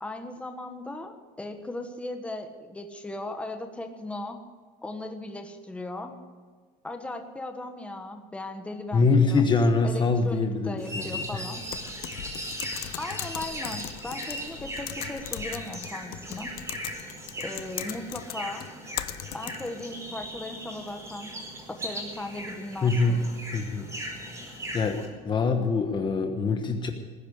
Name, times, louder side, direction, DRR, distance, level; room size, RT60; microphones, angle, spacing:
voice 1, 0.0-4.4 4.8-6.1 6.8-9.4 9.8-11.6 13.0-16.5 17.4-18.7 19.3-21.4 21.7-23.2, left 2 dB, 5° left, 5 dB, 1.5 m, -37 dB
voice 2, 8.9-11.4 22.8-23.2 23.5-23.9 24.7-25.0 25.2-26.9, left 4 dB, 25° left, 5 dB, 1.2 m, -24 dB
sound 1, 10.8-25.1, equal, 15° right, 4.7 m, -38 dB
Typing, 11.7-19.8, left 16 dB, 60° left, 0.7 m, -39 dB
19.5 x 10.5 x 6.6 m, 1.5 s
cardioid pair, 150°, 18 cm